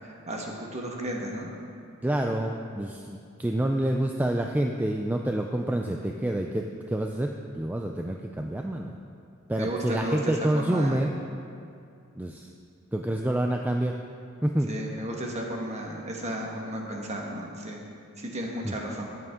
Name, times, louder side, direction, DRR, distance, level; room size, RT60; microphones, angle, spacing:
voice 1, 0.0-1.5 9.6-11.0 14.7-17.8 18.2-19.1, equal, 30° right, 0 dB, 1.4 m, -33 dB
voice 2, 2.0-8.9 9.5-11.1 12.2-12.5 12.9-14.0 14.4-14.7 18.6-18.7, right 1 dB, 10° right, 2 dB, 0.3 m, -28 dB
14.0 x 9.6 x 3.6 m, 2.5 s
head